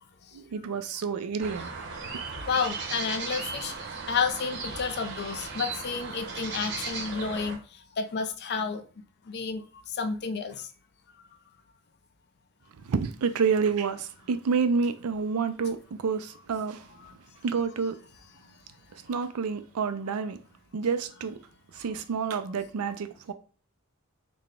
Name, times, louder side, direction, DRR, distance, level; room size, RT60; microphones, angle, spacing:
voice 1, 0.3-1.7 12.8-16.9 17.4-18.0 18.9-20.4 20.7-21.4 21.7-23.3, right 5 dB, 90° right, 0.4 m, -29 dB
sound 1, 1.4-7.6, right 4 dB, 55° right, 0.8 m, -37 dB
voice 2, 2.5-3.8 4.1-7.6 8.0-8.8 9.3-9.6 10.0-10.6, left 5 dB, 50° left, 0.5 m, -30 dB
3.9 x 2.2 x 3.5 m
head